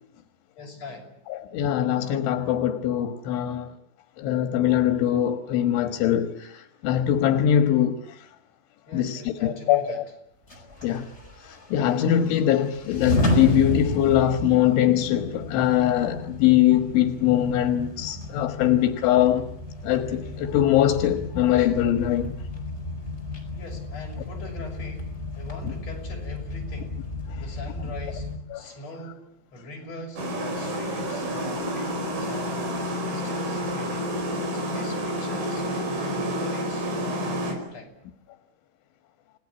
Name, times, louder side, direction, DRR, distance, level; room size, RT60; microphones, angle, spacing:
voice 1, 0.6-1.2 8.9-10.0 23.5-25.1 25.4-27.0 27.4-28.3 28.5-30.2 30.5-32.7 33.0-34.1 34.5-38.0, left 1 dB, 35° left, 7.1 m, -41 dB
voice 2, 1.3-3.7 4.2-8.0 8.9-10.0 10.8-11.1 11.5-19.5 19.8-22.3 25.6-25.7 28.5-28.6, left 11 dB, 80° left, 3.9 m, -22 dB
sound 1, 10.5-28.4, left 1 dB, 15° left, 5.2 m, -32 dB
sound 2, 30.2-37.5, equal, 80° right, 7.4 m, -29 dB
29.5 x 18.5 x 9.9 m
omnidirectional pair, 5.3 m